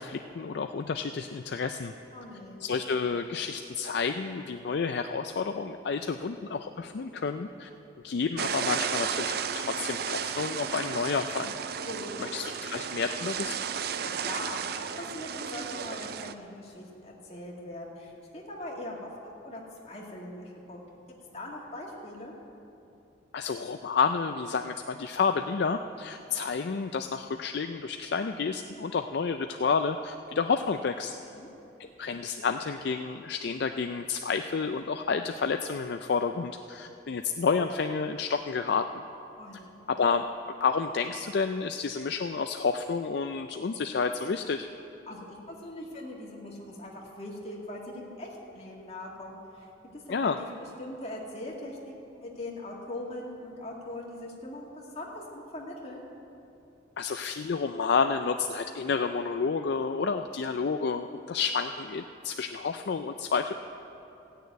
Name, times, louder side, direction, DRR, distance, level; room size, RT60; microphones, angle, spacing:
voice 1, 0.0-1.9 2.6-7.7 8.0-11.6 12.2-13.5 23.3-31.1 31.8-38.9 39.9-40.3 40.6-44.7 50.1-50.4 57.0-63.5, left 5 dB, 55° left, 7 dB, 0.4 m, -30 dB
voice 2, 2.1-2.6 11.8-12.2 14.0-20.8 21.3-22.3 31.2-31.5 39.4-39.7 45.1-50.5 50.8-56.0, left 1 dB, 35° left, -3 dB, 2.1 m, -41 dB
sound 1, 8.4-16.3, right 7 dB, 55° right, 0.4 m, -33 dB
15.5 x 6.7 x 9.2 m, 2.9 s
head